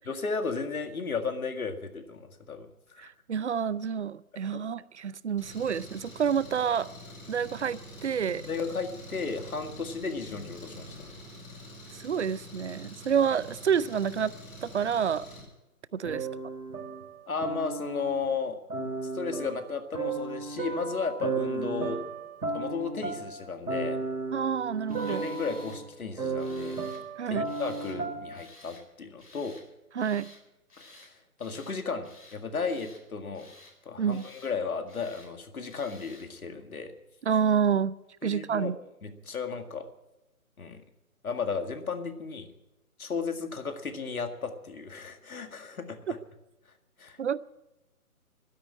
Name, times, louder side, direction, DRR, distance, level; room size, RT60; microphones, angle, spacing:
voice 1, 0.0-2.7 2.9-3.1 4.5-4.6 8.5-11.2 16.0-16.2 17.3-18.6 19.1-22.0 22.5-24.0 25.1-26.8 27.3-29.6 30.8-33.5 33.9-36.9 38.2-38.7 39.0-39.8 40.6-40.8 41.2-42.5 43.0-46.2 47.0-47.2, left 5 dB, 70° left, 2.0 m, -34 dB
voice 2, 3.0-6.9 7.3-8.4 11.9-14.3 14.6-15.3 15.9-16.3 24.3-25.3 27.2-27.5 29.9-30.3 34.0-34.3 37.2-37.9 38.2-38.8 47.2-47.4, right 7 dB, 50° right, 0.6 m, -28 dB
Engine, 5.4-15.4, equal, 15° left, 5.0 m, -46 dB
sound 1, 16.1-18.3 18.7-28.4, right 3 dB, 80° right, 2.3 m, -34 dB
Tools, 24.9-25.8 26.4-27.0 27.5-28.0 28.3-28.9 29.2-29.7 30.0-30.4 30.7-31.1 31.4-31.8 32.0-33.0 33.3-33.8 34.1-34.5 34.9-35.3 35.7-36.3, left 2 dB, 90° left, 4.5 m, -54 dB
12.5 x 10.5 x 9.7 m
figure-of-eight pair, 150°, 45 cm